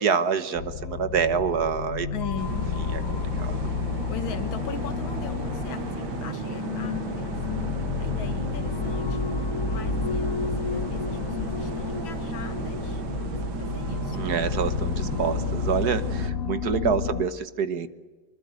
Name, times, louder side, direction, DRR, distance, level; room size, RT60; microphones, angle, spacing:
voice 1, 0.0-2.1 2.9-3.6 14.1-17.9, right 6 dB, 55° right, 12 dB, 1.7 m, -27 dB
sound 1, 0.6-17.3, left 6 dB, 50° left, 1.2 m, -30 dB
voice 2, 2.1-2.7 4.1-7.6 8.0-9.3 9.7-14.6 16.8-17.2, left 7 dB, 90° left, 10 dB, 2.3 m, -40 dB
sound 2, 2.3-16.0, left 1 dB, 65° left, 5.4 m, -42 dB
sound 3, 2.4-16.3, right 9 dB, 80° right, 2.0 m, -35 dB
25.0 x 24.0 x 8.1 m, 1.3 s
omnidirectional pair, 2.2 m